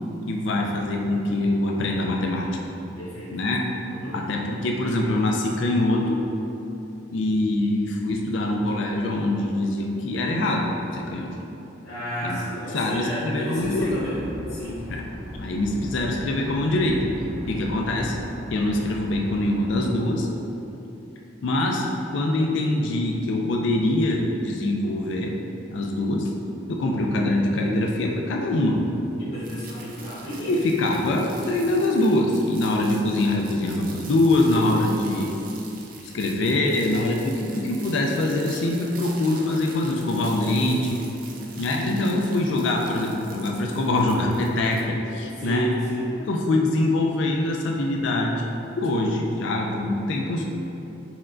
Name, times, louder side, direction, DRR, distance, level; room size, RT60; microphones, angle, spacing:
voice 1, 0.3-2.5 3.3-3.6 4.1-6.2 7.1-11.3 12.2-12.4 12.7-14.0 14.9-15.0 15.3-17.0 17.5-18.1 18.5-20.3 21.4-21.8 22.1-25.3 25.7-26.3 26.7-28.8 30.5-35.3 36.1-41.0 41.6-45.7 46.3-48.4 48.8-50.4, left 2 dB, 75° left, 0 dB, 0.4 m, -24 dB
voice 2, 3.0-3.3 3.9-4.2 11.8-14.2 14.5-14.8 29.2-30.5 41.7-41.9 45.4-46.2, equal, 60° left, -10 dB, 0.9 m, -32 dB
sound 1, 13.6-19.8, equal, 15° right, 0.9 m, -39 dB
sound 2, 29.4-44.8, right 4 dB, 50° right, 0.5 m, -44 dB
4.4 x 4.2 x 2.5 m, 2.9 s
head